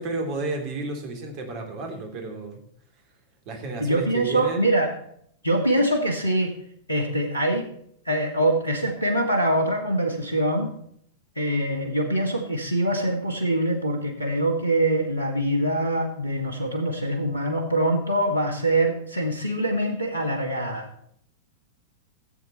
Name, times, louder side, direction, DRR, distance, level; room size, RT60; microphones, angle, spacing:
voice 1, 0.0-2.6 3.5-4.8, right 2 dB, 40° right, 4 dB, 3.0 m, -32 dB
voice 2, 3.8-4.9 5.4-6.6 6.9-7.7 8.1-10.7 11.4-20.9, right 1 dB, 85° left, 3 dB, 1.9 m, -24 dB
14.5 x 8.1 x 4.2 m, 0.69 s
figure-of-eight pair, 100°, 0 cm